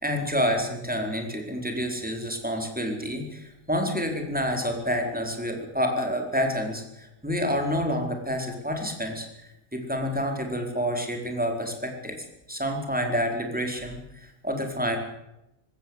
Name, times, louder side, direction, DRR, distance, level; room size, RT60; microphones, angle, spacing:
voice 1, 0.0-9.3 9.7-12.2 12.5-15.0, equal, 5° right, 3 dB, 4.5 m, -28 dB
20.0 x 17.0 x 8.0 m, 0.87 s
omnidirectional pair, 1.6 m